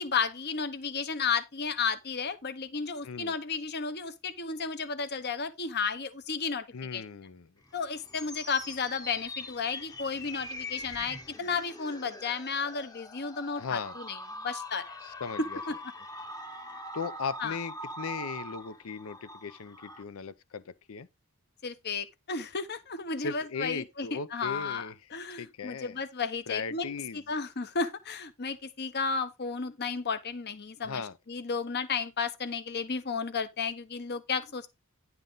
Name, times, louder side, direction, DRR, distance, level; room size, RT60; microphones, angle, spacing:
voice 1, 0.0-6.7 6.9-7.0 7.7-14.2 14.4-15.0 15.7-15.8 17.4-17.6 21.6-26.9 27.3-31.0 31.3-34.7, left 5 dB, 50° left, 1.0 m, -33 dB
voice 2, 3.0-3.3 6.7-7.5 13.6-14.0 15.0-15.6 16.9-21.1 23.2-25.0 25.4-26.0 26.5-27.2 30.8-31.2, left 5 dB, 65° left, 0.6 m, -37 dB
sound 1, 7.7-20.0, left 1 dB, 15° left, 0.9 m, -43 dB
10.5 x 5.7 x 3.9 m
head